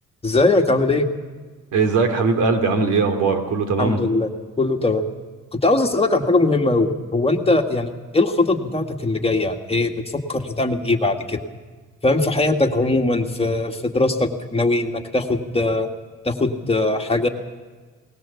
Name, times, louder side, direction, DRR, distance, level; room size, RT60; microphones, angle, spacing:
voice 1, 0.2-1.1 3.8-4.3 4.6-5.0 5.5-11.4 12.0-15.9 16.2-17.3, left 2 dB, 20° left, 3 dB, 2.0 m, -20 dB
voice 2, 1.7-4.0, right 4 dB, 80° right, 6 dB, 3.0 m, -20 dB
20.5 x 19.5 x 7.2 m, 1.4 s
cardioid pair, 90°, 30 cm